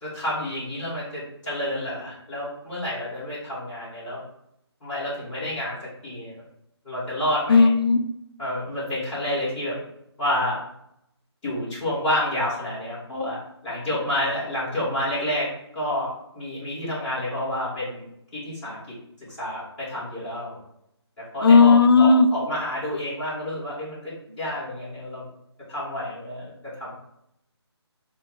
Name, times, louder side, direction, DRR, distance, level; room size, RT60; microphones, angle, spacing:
voice 1, 0.0-4.2 4.8-5.8 6.0-6.3 6.8-7.7 8.4-9.8 10.2-10.6 11.4-13.4 13.6-18.0 18.3-18.8 19.3-20.6 21.2-25.3 25.7-27.0, left 1 dB, 5° left, -13 dB, 1.5 m, -29 dB
voice 2, 7.5-8.0 21.4-22.3, left 4 dB, 55° left, 8 dB, 0.4 m, -14 dB
4.4 x 2.3 x 3.7 m, 0.78 s
hypercardioid pair, 170°, 14 cm